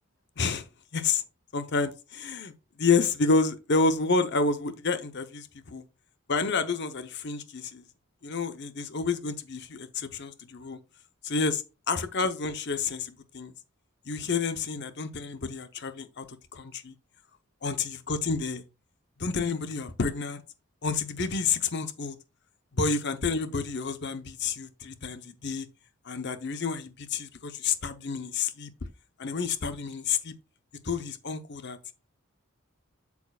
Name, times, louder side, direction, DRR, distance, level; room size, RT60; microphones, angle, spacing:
voice 1, 0.4-0.7 0.9-1.2 1.5-2.5 2.8-5.8 6.3-7.8 8.2-10.8 11.2-13.5 14.1-16.9 17.6-18.6 19.2-20.4 20.8-22.1 22.7-25.7 26.0-28.7 29.2-30.3 30.8-31.8, left 4 dB, 55° left, 0.8 m, -29 dB
8.4 x 7.2 x 2.4 m
head